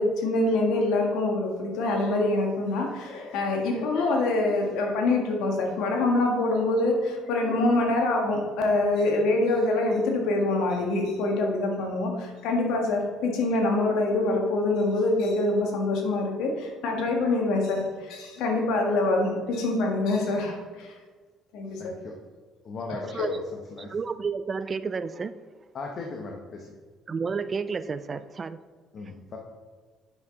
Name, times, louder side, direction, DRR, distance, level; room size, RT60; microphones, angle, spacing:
voice 1, 0.0-20.9 21.5-21.9 22.9-23.3, left 2 dB, 75° left, 1 dB, 1.7 m, -25 dB
voice 2, 21.8-22.1 22.6-23.9 25.7-26.8 28.9-29.4, left 3 dB, 55° left, 1 dB, 1.1 m, -38 dB
voice 3, 23.8-25.3 27.1-28.6, right 5 dB, 40° right, 13 dB, 0.4 m, -31 dB
9.1 x 5.8 x 3.8 m, 1.4 s
supercardioid pair, 75°, 0 cm